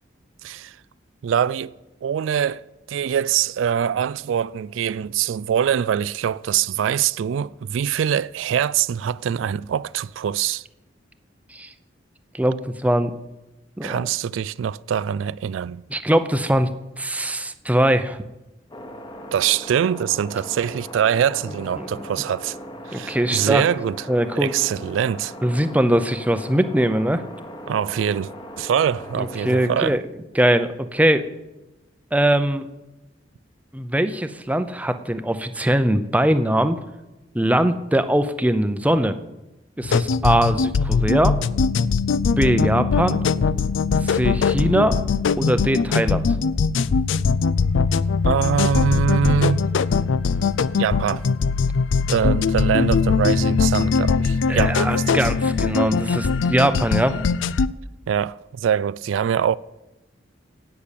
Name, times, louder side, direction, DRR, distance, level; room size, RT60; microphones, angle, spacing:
voice 1, 0.4-0.8 1.2-1.7 2.0-2.6 2.9-10.6 13.8-15.8 19.3-22.6 22.9-24.0 24.4-25.3 27.7-28.3 28.6-30.0 48.2-49.7 50.8-51.3 52.1-55.2 58.1-59.6, right 8 dB, 80° right, 0.3 m, -23 dB
voice 2, 12.3-13.1 13.8-14.1 15.9-16.7 17.0-18.2 21.8-21.9 22.9-23.6 24.1-24.5 25.4-27.2 29.2-30.0 30.3-31.3 32.1-32.7 33.7-36.8 37.3-39.2 39.8-41.4 42.4-43.2 44.0-45.0 45.4-46.4 54.5-57.2, right 1 dB, 10° right, 0.6 m, -21 dB
sound 1, 18.7-29.9, equal, 25° left, 1.3 m, -38 dB
sound 2, 39.8-57.7, left 5 dB, 75° left, 0.4 m, -21 dB
10.5 x 8.6 x 8.4 m
head